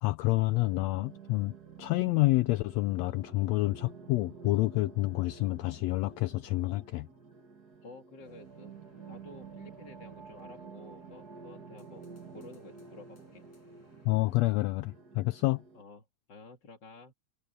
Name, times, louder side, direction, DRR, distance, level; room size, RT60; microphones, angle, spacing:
voice 1, 0.0-7.1 14.0-15.6, left 19 dB, 90° left, 1.5 m, -28 dB
sound 1, 0.6-15.8, right 5 dB, 35° right, 2.4 m, -50 dB
voice 2, 7.8-8.8 9.1-13.4 15.7-17.1, left 3 dB, 35° left, 2.7 m, -52 dB
sound 2, 8.2-14.5, left 2 dB, 55° left, 7.0 m, -65 dB
omnidirectional pair, 3.6 m